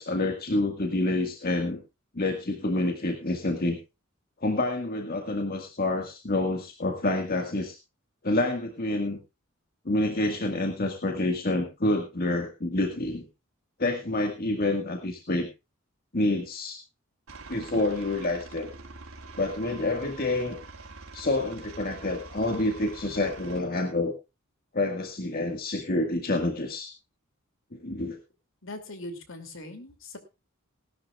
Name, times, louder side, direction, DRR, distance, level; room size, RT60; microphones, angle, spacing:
voice 1, 0.0-1.8 2.1-3.8 4.4-7.8 8.2-9.2 9.9-13.3 13.8-15.5 16.1-16.8 17.5-18.7 19.3-20.6 21.1-24.1 24.7-26.9 27.7-28.2, left 2 dB, 45° left, 3 dB, 1.7 m, -28 dB
Aircraft, 17.3-23.6, right 3 dB, 80° right, 3.4 m, -45 dB
voice 2, 28.6-30.2, left 2 dB, 65° left, 8 dB, 2.7 m, -40 dB
19.0 x 12.0 x 2.4 m, 0.26 s
head